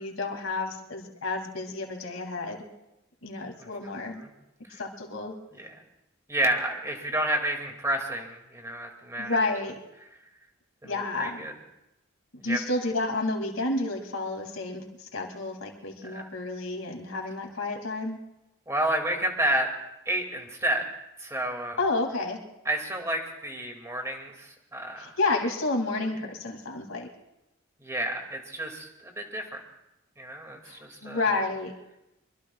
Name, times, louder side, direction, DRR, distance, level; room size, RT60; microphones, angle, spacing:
voice 1, 0.0-2.7 3.2-4.2 4.7-5.3 9.2-9.8 10.8-11.4 12.3-18.2 21.8-22.4 25.0-27.1 30.6-31.7, left 2 dB, 80° left, 2 dB, 2.5 m, -30 dB
voice 2, 3.6-4.3 4.7-4.8 5.5-5.8 6.3-9.4 10.8-11.5 12.4-12.6 16.1-16.3 18.7-19.7 20.1-20.8 21.2-21.8 22.6-25.1 27.8-29.6 30.2-31.2, right 1 dB, 15° right, 2 dB, 2.3 m, -30 dB
24.5 x 23.0 x 2.4 m, 0.90 s
head